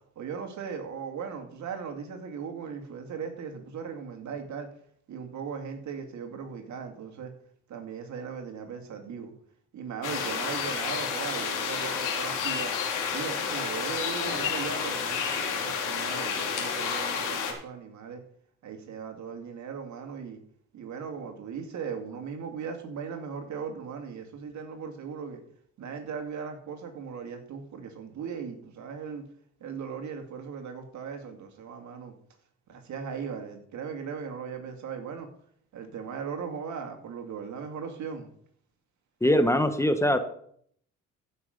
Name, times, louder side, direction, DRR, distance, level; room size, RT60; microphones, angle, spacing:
voice 1, 0.2-4.7 5.1-7.3 7.7-9.3 9.7-12.8 13.1-18.2 18.6-20.4 20.7-25.4 25.8-29.2 29.6-32.1 32.7-35.3 35.7-38.3, right 6 dB, 65° right, 5 dB, 2.4 m, -38 dB
sound 1, 10.0-17.5, left 6 dB, 75° left, 3.0 m, -30 dB
voice 2, 39.2-40.2, left 1 dB, 10° left, 8 dB, 1.1 m, -22 dB
14.5 x 6.0 x 5.3 m, 0.64 s
cardioid pair, 85°, 31 cm